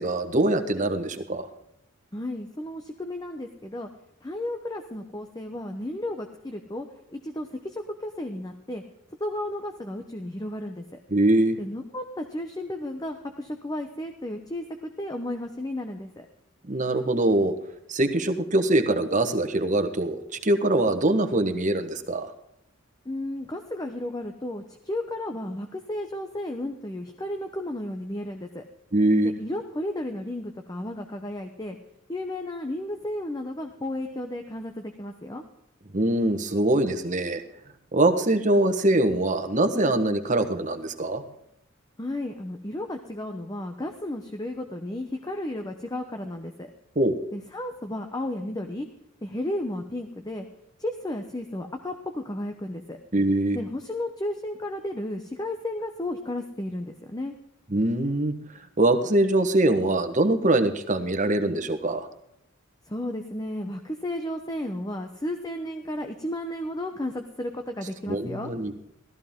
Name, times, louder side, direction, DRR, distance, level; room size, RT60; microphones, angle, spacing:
voice 1, 0.0-1.5 11.1-11.6 16.7-17.5 17.9-20.2 20.4-22.3 28.9-29.3 35.9-37.4 37.9-41.2 47.0-47.1 53.1-53.6 57.7-58.3 58.8-62.1 68.1-68.7, right 1 dB, 35° right, 7 dB, 1.3 m, -23 dB
voice 2, 2.1-3.9 4.2-6.9 7.1-8.8 9.2-11.0 11.6-16.3 23.1-28.6 29.2-31.8 32.1-35.4 42.0-46.7 47.3-48.9 49.2-50.4 50.8-53.0 53.5-57.3 62.9-68.5, left 1 dB, 20° left, 5 dB, 0.8 m, -33 dB
15.5 x 13.5 x 3.7 m, 0.79 s
head